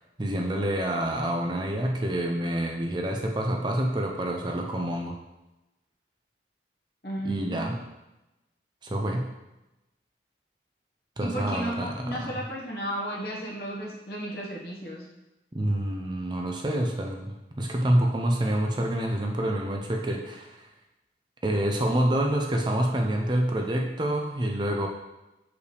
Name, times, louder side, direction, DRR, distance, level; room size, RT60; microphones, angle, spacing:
voice 1, 0.2-5.1 7.2-7.8 8.8-9.3 11.2-12.3 15.5-20.7 21.4-24.9, right 1 dB, 25° right, 1 dB, 0.5 m, -27 dB
voice 2, 7.0-7.7 11.2-15.1, right 1 dB, 60° left, -4 dB, 1.5 m, -34 dB
6.4 x 4.8 x 3.4 m, 1.0 s
head